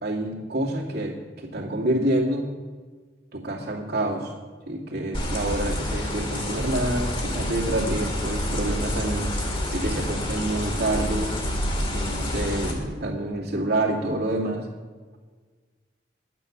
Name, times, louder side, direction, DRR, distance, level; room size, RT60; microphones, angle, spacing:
voice 1, 0.0-2.5 3.3-4.3 4.7-9.3 9.7-11.3 11.9-14.7, right 1 dB, 60° right, -1 dB, 2.5 m, -27 dB
sound 1, 5.1-12.7, left 1 dB, 30° left, 2.2 m, -28 dB
10.5 x 9.2 x 7.2 m, 1.5 s
head